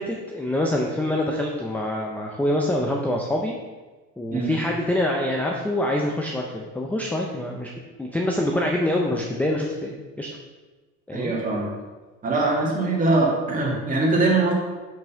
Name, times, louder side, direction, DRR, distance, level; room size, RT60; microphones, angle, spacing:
voice 1, 0.0-3.6 4.2-7.7 8.0-10.3 11.1-11.3, left 1 dB, 5° left, 0 dB, 0.5 m, -25 dB
voice 2, 11.1-11.7 12.2-14.5, right 2 dB, 25° right, -2 dB, 2.0 m, -22 dB
6.2 x 5.4 x 5.6 m, 1.3 s
cardioid pair, 150°, 32 cm